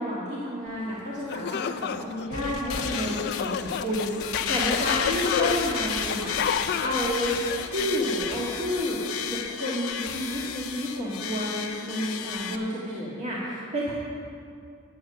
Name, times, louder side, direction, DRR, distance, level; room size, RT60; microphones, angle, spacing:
voice 1, 0.0-4.1 4.5-6.4 6.8-7.3 7.6-9.0 9.3-13.9, equal, 35° right, -7 dB, 1.7 m, -30 dB
sound 1, 0.9-1.0 1.3-8.4, left 7 dB, 50° left, 0.3 m, -31 dB
sound 2, 2.3-12.6, left 7 dB, 75° left, 0.8 m, -32 dB
9.7 x 7.8 x 7.5 m, 2.4 s
head